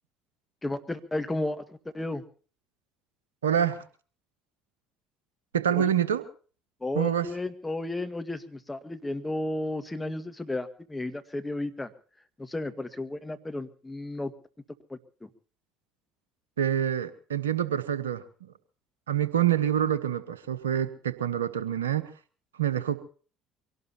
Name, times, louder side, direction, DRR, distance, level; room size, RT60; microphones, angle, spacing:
voice 1, 0.6-2.2 5.7-5.9 6.8-11.9 12.4-14.3 14.9-15.3, left 2 dB, 15° left, 8 dB, 1.9 m, -33 dB
voice 2, 3.4-3.8 5.5-6.2 6.9-7.3 16.6-18.5 19.1-22.1 22.6-23.0, right 9 dB, 85° right, 14 dB, 1.2 m, -26 dB
24.0 x 18.0 x 3.0 m, 0.41 s
hypercardioid pair, 60°, 0 cm